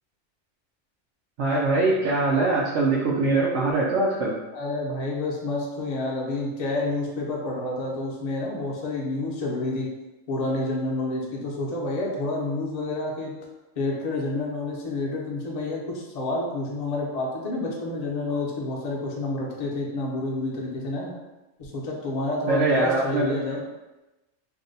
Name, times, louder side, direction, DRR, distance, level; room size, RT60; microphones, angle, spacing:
voice 1, 1.4-4.3 22.5-23.6, right 3 dB, 70° right, -5 dB, 0.8 m, -23 dB
voice 2, 4.5-9.9 10.3-13.3 13.8-21.1 21.6-23.6, left 2 dB, 45° left, -2 dB, 0.5 m, -29 dB
2.6 x 2.1 x 3.8 m, 1.0 s
omnidirectional pair, 1.3 m